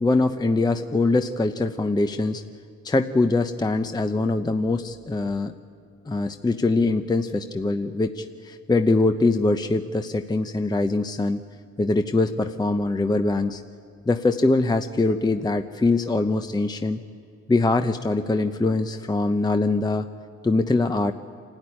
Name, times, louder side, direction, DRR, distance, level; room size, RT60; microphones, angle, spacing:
voice 1, 0.0-2.4 2.8-5.5 6.1-11.4 11.8-13.6 14.1-17.0 17.5-20.1 20.4-21.1, left 2 dB, 15° left, 7 dB, 0.7 m, -23 dB
26.5 x 13.0 x 9.8 m, 2.4 s
cardioid pair, 90°, 30 cm